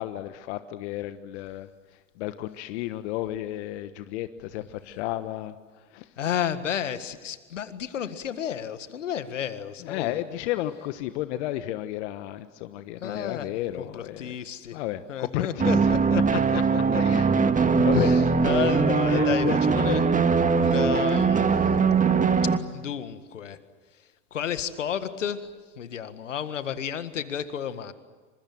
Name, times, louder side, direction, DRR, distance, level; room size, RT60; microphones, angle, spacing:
voice 1, 0.0-1.7 2.2-5.6 5.9-6.1 9.8-14.4 14.7-15.7 16.5-16.6 17.0-17.3 17.6-18.5 19.0-19.6, left 14 dB, 65° left, 11 dB, 1.3 m, -32 dB
voice 2, 6.2-10.2 13.0-13.5 13.8-14.8 15.1-16.6 16.9-17.5 17.9-20.0 20.3-21.6 22.4-23.6 24.3-27.9, left 9 dB, 85° left, 12 dB, 1.8 m, -32 dB
sound 1, 15.6-22.6, right 5 dB, 20° right, 1.9 m, -21 dB
27.5 x 26.0 x 7.8 m, 1.4 s
hypercardioid pair, 80°, 36 cm